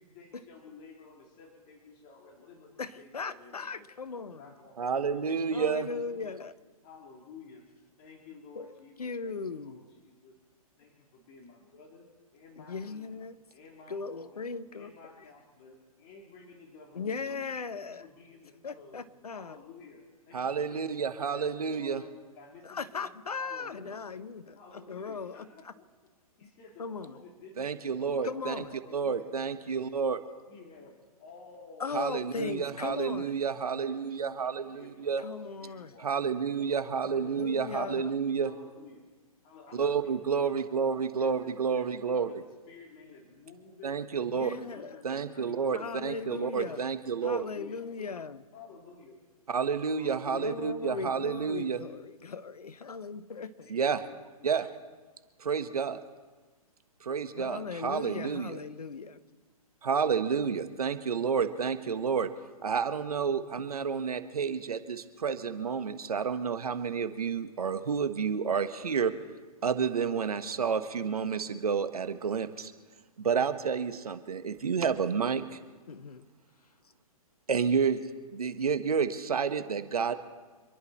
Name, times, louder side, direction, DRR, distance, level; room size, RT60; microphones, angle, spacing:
voice 1, 0.0-3.9 4.3-5.5 5.8-6.4 6.8-7.6 8.0-10.4 10.8-12.1 12.3-13.2 13.5-14.5 14.7-19.0 19.3-23.1 23.4-24.0 24.5-25.9 26.4-27.7 28.0-28.3 28.7-29.3 30.5-33.5 33.8-35.3 35.6-36.1 36.5-37.3 38.4-39.1 39.4-41.9 42.3-42.4 42.7-44.0 44.3-46.7 47.2-47.8 48.5-49.2 49.9-50.6 53.6-54.5, left 4 dB, 35° left, 3.2 m, -53 dB
voice 2, 2.8-4.5 5.5-6.5 8.6-8.7 9.0-9.8 12.6-13.4 13.9-15.1 16.9-18.1 18.6-19.6 22.6-25.4 26.8-27.1 28.2-28.7 31.8-33.3 35.2-35.9 37.1-38.1 44.3-45.0 45.7-46.9 47.2-48.4 50.3-53.7 57.3-59.2 75.9-76.3, left 4 dB, 85° left, 1.1 m, -38 dB
voice 3, 4.8-5.9 20.3-22.0 27.6-28.6 28.9-30.2 31.9-35.2 36.0-38.5 39.7-42.3 43.8-44.5 45.0-47.4 49.5-51.8 53.7-54.0 54.4-54.7 55.4-56.0 57.0-58.6 59.8-62.3 62.6-69.1 69.6-72.7 73.2-75.6 77.5-78.0 78.3-80.1, right 6 dB, 80° right, 1.4 m, -30 dB
27.0 x 11.0 x 4.3 m
hypercardioid pair, 130°, 19 cm